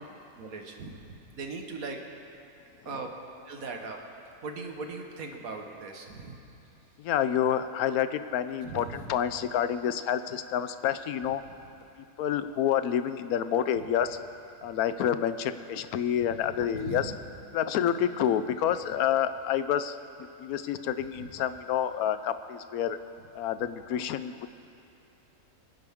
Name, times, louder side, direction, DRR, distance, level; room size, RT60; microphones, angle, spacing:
voice 1, 0.3-2.0 2.8-3.1 3.4-4.0 4.4-6.4 8.6-9.1 16.7-17.1, right 3 dB, 70° right, 3 dB, 1.6 m, -39 dB
voice 2, 7.0-11.4 12.2-14.2 14.6-17.1 17.5-20.0 20.4-23.0 23.3-24.5, left 9 dB, 80° left, 12 dB, 1.1 m, -28 dB
24.5 x 10.5 x 3.6 m, 2.7 s
omnidirectional pair, 1.6 m